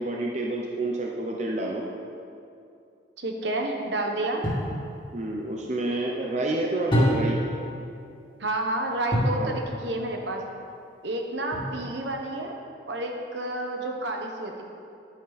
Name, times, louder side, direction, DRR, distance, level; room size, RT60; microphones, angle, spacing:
voice 1, 0.0-1.8 5.1-7.4 9.4-9.5, right 2 dB, 40° right, -1 dB, 0.8 m, -29 dB
voice 2, 3.2-4.5 8.4-10.4 11.0-12.6 12.9-14.6, right 2 dB, 65° right, 2 dB, 1.3 m, -30 dB
sound 1, 4.4-4.8 6.9-7.5 9.1-9.5 11.5-12.0, equal, 25° left, 2.4 m, -25 dB
11.5 x 9.7 x 4.2 m, 2.5 s
head